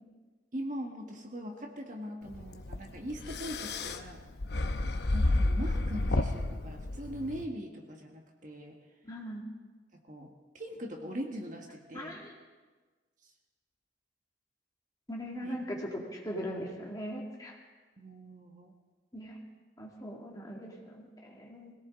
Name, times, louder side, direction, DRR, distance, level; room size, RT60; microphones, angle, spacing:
voice 1, 0.5-4.2 5.1-8.8 10.1-12.2 15.4-15.5 18.0-18.7, equal, 45° right, 2 dB, 1.6 m, -41 dB
sound 1, 2.3-7.4, left 2 dB, 60° left, 0.8 m, -31 dB
voice 2, 9.0-9.4 11.9-12.3 15.1-17.6 19.1-19.4 19.8-21.7, equal, 20° left, -2 dB, 2.3 m, -40 dB
21.5 x 17.5 x 3.8 m, 1.4 s
head